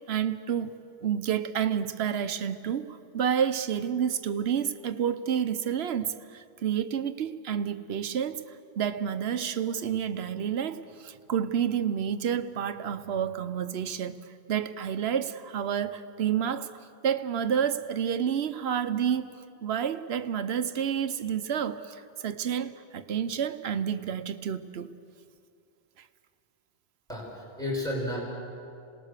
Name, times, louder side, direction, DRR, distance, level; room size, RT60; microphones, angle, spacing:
voice 1, 0.0-16.7 17.0-24.9 26.0-26.1, right 8 dB, 90° right, 1.0 m, -30 dB
voice 2, 27.1-28.2, left 1 dB, 5° left, 5.6 m, -32 dB
27.0 x 19.5 x 6.6 m
omnidirectional pair, 1.0 m